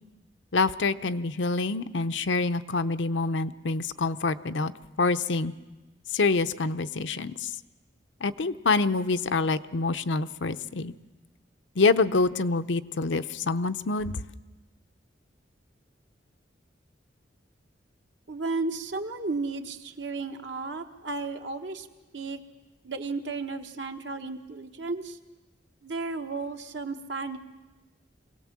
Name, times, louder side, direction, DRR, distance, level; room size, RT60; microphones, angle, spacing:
voice 1, 0.5-4.7 5.0-5.5 6.1-7.5 8.2-10.9 11.8-14.2, left 3 dB, 80° left, 11 dB, 0.7 m, -26 dB
voice 2, 18.3-21.9 22.1-22.4 22.8-25.2 25.8-27.4, right 3 dB, 75° right, 5 dB, 1.4 m, -33 dB
24.5 x 17.5 x 7.4 m, 1.1 s
head